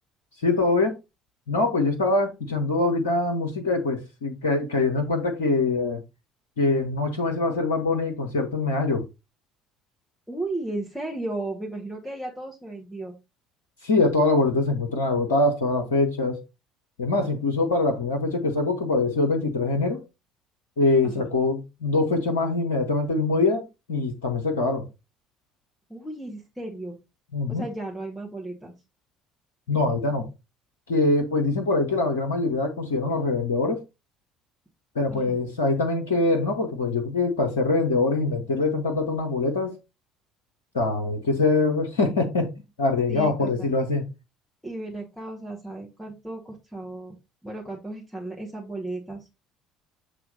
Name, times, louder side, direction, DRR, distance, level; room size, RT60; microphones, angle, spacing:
voice 1, 0.4-0.9 1.5-6.0 6.6-9.0 13.8-16.4 17.0-20.0 20.8-24.9 27.3-27.6 29.7-30.3 30.9-33.8 34.9-39.8 40.7-42.5 42.8-44.0, left 3 dB, 70° left, 0.8 m, -23 dB
voice 2, 10.3-13.1 21.0-21.3 25.9-27.0 27.5-28.7 35.1-35.4 43.1-43.7 44.6-47.1 47.4-49.4, right 2 dB, ahead, 1.8 m, -35 dB
7.9 x 3.3 x 4.0 m
figure-of-eight pair, 55°, 0 cm